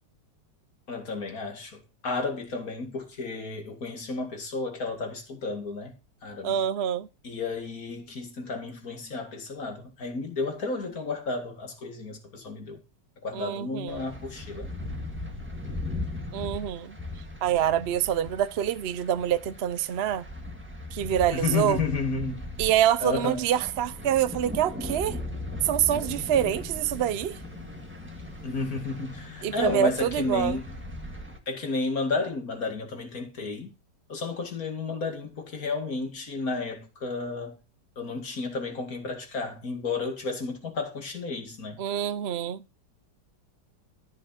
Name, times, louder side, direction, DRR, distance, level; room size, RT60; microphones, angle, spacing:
voice 1, 0.9-6.6 7.2-12.8 13.2-14.7 21.3-22.5 23.0-23.5 28.4-30.6 31.5-33.7 34.1-37.6 38.0-41.8, left 3 dB, 55° left, 2.7 m, -32 dB
voice 2, 6.4-7.1 13.3-14.0 16.3-17.0 17.4-20.3 20.9-21.8 22.6-25.2 25.6-27.4 29.4-30.6 41.8-42.6, right 10 dB, 65° right, 0.6 m, -26 dB
sound 1, 13.9-31.4, left 1 dB, 5° right, 1.7 m, -38 dB
Telephone, 26.9-30.0, left 6 dB, 35° left, 3.2 m, -49 dB
13.5 x 5.4 x 5.6 m
omnidirectional pair, 1.9 m